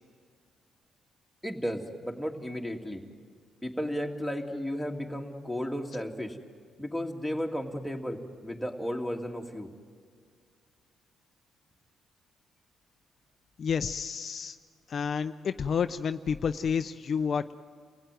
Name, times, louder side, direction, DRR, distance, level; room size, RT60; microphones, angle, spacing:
voice 1, 1.4-3.0 3.6-6.4 6.8-9.7, equal, ahead, 0 dB, 2.6 m, -34 dB
voice 2, 13.6-14.6 14.9-17.5, left 6 dB, 50° left, 9 dB, 0.6 m, -30 dB
29.0 x 16.5 x 9.3 m, 2.1 s
cardioid pair, 90°, 0 cm